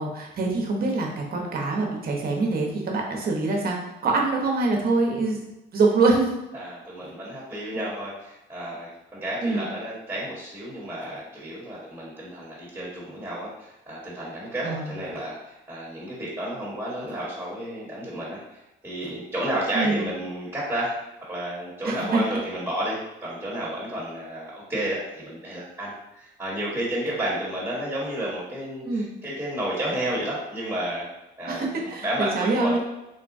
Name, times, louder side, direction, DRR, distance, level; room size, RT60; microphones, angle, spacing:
voice 1, 0.0-3.8 4.0-5.4 5.7-6.3 9.4-9.7 14.6-14.9 19.7-20.0 21.8-22.2 28.8-29.1 31.4-32.8, right 3 dB, 50° right, 0 dB, 0.8 m, -24 dB
voice 2, 6.5-20.9 21.3-31.1 31.4-32.8, right 1 dB, 10° right, -7 dB, 1.1 m, -31 dB
3.8 x 2.2 x 2.6 m, 0.94 s
cardioid pair, 90°, 20 cm